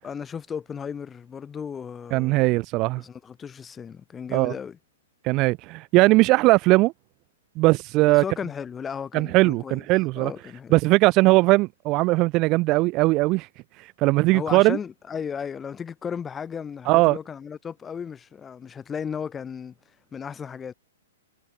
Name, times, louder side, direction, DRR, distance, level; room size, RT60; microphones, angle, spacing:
voice 1, 0.0-2.5 3.0-4.8 8.1-9.8 10.2-10.8 14.3-19.7 20.1-20.7, left 7 dB, 15° left, 5.9 m, -35 dB
voice 2, 2.1-3.0 4.3-4.5 5.2-6.9 7.6-8.2 9.1-10.3 10.7-13.5 14.0-14.8 16.9-17.2, right 22 dB, 35° right, 2.7 m, -19 dB
figure-of-eight pair, 115°, 0 cm